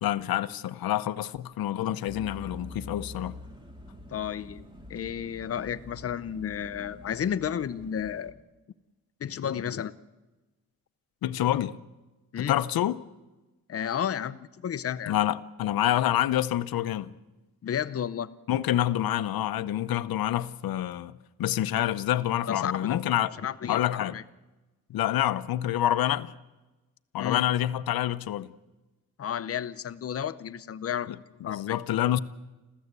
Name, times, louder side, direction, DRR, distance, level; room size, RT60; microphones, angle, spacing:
voice 1, 0.0-3.3 11.2-11.8 12.4-13.0 15.1-17.1 18.5-21.1 21.4-23.3 23.7-24.1 24.9-26.3 27.1-28.5 31.1-31.2 31.4-32.2, left 12 dB, 85° left, 0.8 m, -27 dB
sound 1, 2.1-8.3, left 1 dB, 15° right, 2.1 m, -46 dB
voice 2, 4.1-8.3 9.2-9.9 12.3-12.6 13.7-15.1 17.6-18.3 22.5-23.0 23.4-24.2 27.2-27.4 29.2-31.1 31.4-31.8, left 9 dB, 40° left, 0.7 m, -32 dB
26.5 x 15.0 x 8.2 m
wide cardioid pair, 160°, 35 cm